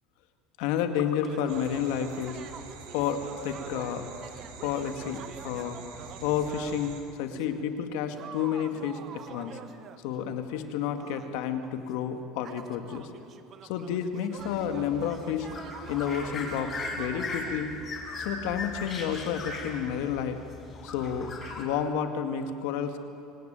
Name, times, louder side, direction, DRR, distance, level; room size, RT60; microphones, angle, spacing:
voice 1, 0.6-2.4 2.9-4.1 4.6-5.8 6.2-9.0 9.3-9.6 10.0-13.1 13.6-15.5 15.9-17.7 18.2-20.4 20.8-21.3 21.6-23.0, left 8 dB, 75° left, 7 dB, 2.0 m, -30 dB
sound 1, 0.7-6.9 7.3-17.6, right 8 dB, 40° right, 1.3 m, -46 dB
sound 2, 1.5-7.0, right 5 dB, 90° right, 4.6 m, -46 dB
sound 3, 14.4-21.6, left 3 dB, 30° left, 5.4 m, -38 dB
26.0 x 18.5 x 9.1 m, 2.7 s
supercardioid pair, 135°, 0 cm